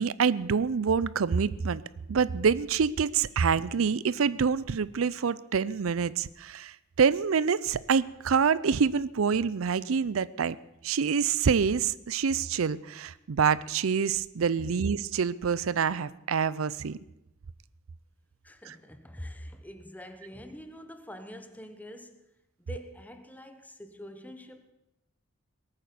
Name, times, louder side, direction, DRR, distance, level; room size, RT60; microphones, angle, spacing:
voice 1, 0.0-1.8 2.1-6.7 7.0-10.6 10.8-17.0 18.7-18.8, right 6 dB, 85° right, 0.5 m, -26 dB
voice 2, 18.4-22.3 22.6-24.7, equal, 10° left, 1.1 m, -45 dB
19.0 x 8.9 x 6.9 m
head